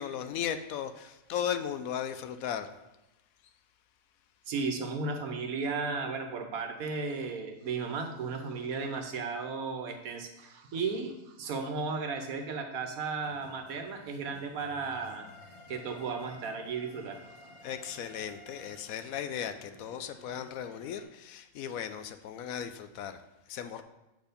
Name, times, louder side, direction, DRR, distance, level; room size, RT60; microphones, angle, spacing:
voice 1, 0.0-2.7 17.6-23.2 23.5-23.8, left 9 dB, 75° left, 9 dB, 1.0 m, -36 dB
voice 2, 4.5-17.3, right 4 dB, 75° right, 5 dB, 1.4 m, -35 dB
sound 1, 13.2-21.0, left 2 dB, 30° left, 0.9 m, -54 dB
7.8 x 4.6 x 5.1 m, 0.97 s
omnidirectional pair, 1.5 m